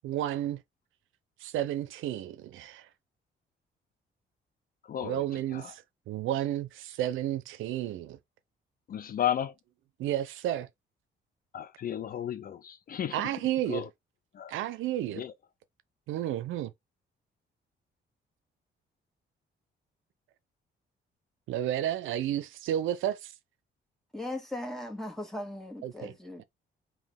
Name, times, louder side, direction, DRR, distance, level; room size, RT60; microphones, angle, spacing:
voice 1, 0.0-0.6 1.4-2.9 5.0-8.2 10.0-10.7 13.1-13.9 14.5-15.2 16.1-16.7 21.5-23.3 25.8-26.1 26.4-26.5, right 12 dB, 85° right, 0.5 m, -32 dB
voice 2, 4.9-5.2 5.5-5.7 8.9-9.5 11.5-13.2 13.7-13.9 14.4-14.5 15.2-15.3, left 10 dB, 45° left, 0.4 m, -33 dB
voice 3, 24.1-26.4, left 1 dB, ahead, 1.7 m, -38 dB
3.8 x 2.8 x 3.5 m
cardioid pair, 90°, 20 cm